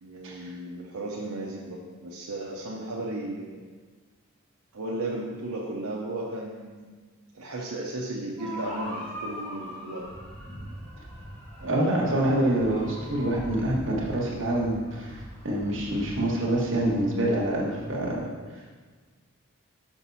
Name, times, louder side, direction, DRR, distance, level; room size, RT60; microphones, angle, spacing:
voice 1, 0.0-3.6 4.7-6.9 7.3-10.1 11.6-12.3, right 1 dB, 85° right, -3 dB, 0.8 m, -35 dB
sound 1, 8.4-18.2, equal, 5° left, 1.5 m, -41 dB
voice 2, 11.6-15.1 15.4-18.2, right 1 dB, 55° right, -4 dB, 1.5 m, -26 dB
5.8 x 5.8 x 4.1 m, 1.4 s
head